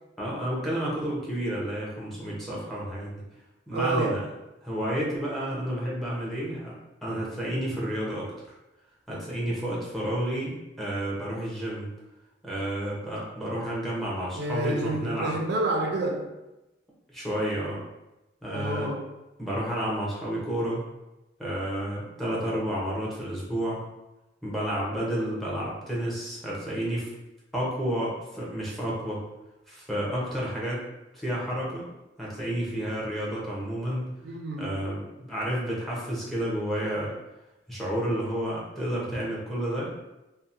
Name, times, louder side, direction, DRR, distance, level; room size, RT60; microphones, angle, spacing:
voice 1, 0.2-3.2 3.7-4.2 4.6-6.7 7.0-8.3 9.1-11.9 12.4-15.4 17.1-17.8 18.4-18.9 19.4-20.9 21.4-23.8 24.4-27.1 27.5-29.2 29.7-30.8 31.1-31.9 32.2-34.1 34.6-37.1 37.7-39.9, right 1 dB, ahead, -6 dB, 0.6 m, -30 dB
voice 2, 3.7-4.3 14.4-16.4 18.5-19.1 34.2-34.8, right 2 dB, 65° right, 1 dB, 0.4 m, -29 dB
2.8 x 2.1 x 2.5 m, 0.98 s
head